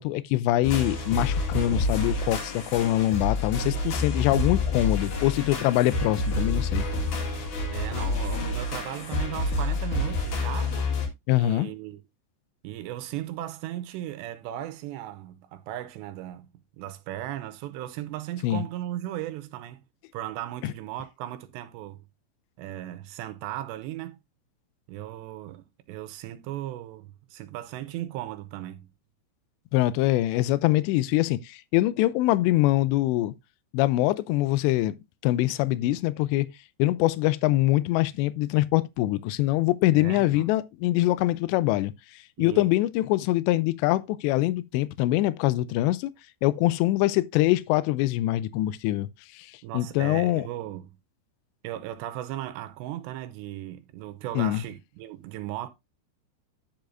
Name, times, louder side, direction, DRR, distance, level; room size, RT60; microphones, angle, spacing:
voice 1, 0.0-6.9 11.3-11.7 18.4-18.6 20.6-20.7 29.7-33.3 33.7-34.9 35.2-36.5 36.8-41.9 42.4-46.1 46.4-49.1 49.3-49.5 49.7-50.4 54.4-54.6, left 16 dB, 80° left, 2.7 m, -24 dB
sound 1, 0.6-11.1, left 2 dB, 55° left, 2.9 m, -28 dB
voice 2, 7.7-10.9 11.4-12.0 12.6-16.5 16.8-19.8 20.1-22.1 22.6-24.2 24.9-28.9 39.9-40.5 42.4-42.7 49.6-50.9 51.6-55.7, right 13 dB, 85° right, 2.8 m, -36 dB
10.5 x 6.8 x 2.6 m
omnidirectional pair, 5.2 m